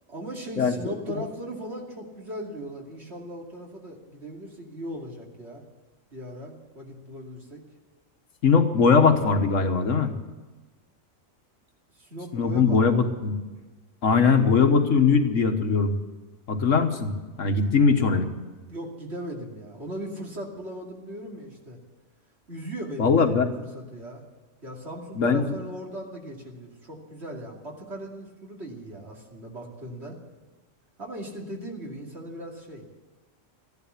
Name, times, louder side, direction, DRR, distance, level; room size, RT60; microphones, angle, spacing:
voice 1, 0.1-5.6 6.1-7.6 12.0-13.1 18.7-21.8 22.5-24.2 24.6-30.2 31.0-32.8, equal, 55° right, -1 dB, 2.8 m, -38 dB
voice 2, 8.4-10.1 12.3-13.3 14.0-15.9 16.5-17.1 17.4-18.3 23.0-23.5 25.2-25.5, left 5 dB, 70° left, 6 dB, 1.6 m, -20 dB
14.5 x 11.0 x 8.4 m, 1.3 s
omnidirectional pair, 1.4 m